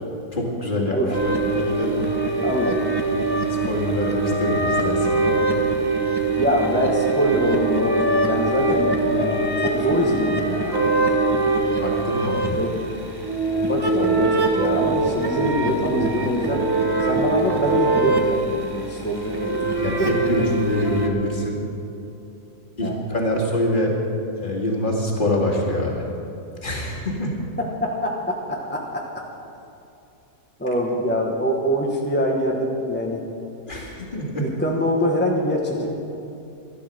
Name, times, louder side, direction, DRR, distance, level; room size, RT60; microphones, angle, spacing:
voice 1, 0.3-1.9 3.6-5.4 11.8-12.6 19.7-21.6 22.8-23.9 24.4-26.1 26.6-27.3 33.7-34.5, left 1 dB, 30° left, -1 dB, 2.2 m, -25 dB
sound 1, 1.1-21.1, right 2 dB, 15° right, 1.1 m, -23 dB
voice 2, 2.4-2.9 6.3-10.8 12.5-12.8 13.6-16.6 17.0-19.6 22.8-22.9 27.6-29.0 30.6-33.2 34.4-35.9, equal, 10° left, -2 dB, 1.0 m, -24 dB
12.5 x 12.0 x 6.6 m, 2.8 s
omnidirectional pair, 1.7 m